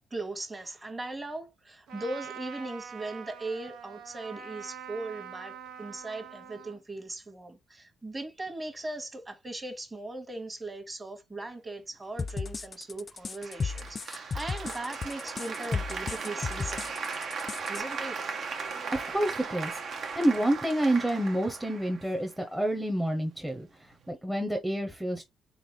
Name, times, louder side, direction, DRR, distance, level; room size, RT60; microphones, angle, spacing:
voice 1, 0.1-16.9 17.7-18.2, right 2 dB, 25° right, 1.4 m, -39 dB
Trumpet, 1.9-6.8, right 7 dB, 80° right, 1.0 m, -44 dB
sound 1, 12.2-17.8, left 5 dB, 40° left, 0.5 m, -34 dB
Applause, 13.4-22.4, right 5 dB, 60° right, 1.1 m, -37 dB
voice 2, 18.9-19.8 20.1-25.2, right 1 dB, 5° right, 0.9 m, -28 dB
4.0 x 3.9 x 3.2 m
cardioid pair, 90°, 0 cm